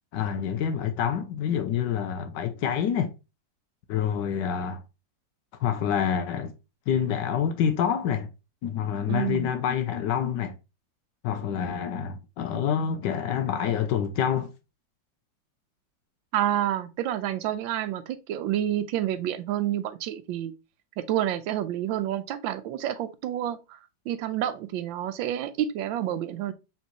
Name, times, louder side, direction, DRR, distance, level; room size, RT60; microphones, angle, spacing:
voice 1, 0.1-3.1 3.9-4.8 5.6-6.5 6.9-8.3 8.6-10.5 11.2-14.5, left 8 dB, 75° left, 1.2 m, -27 dB
voice 2, 9.1-9.5 16.3-20.5 21.0-23.8 24.1-26.5, right 11 dB, 90° right, 1.3 m, -29 dB
4.4 x 3.9 x 3.0 m
omnidirectional pair, 2.0 m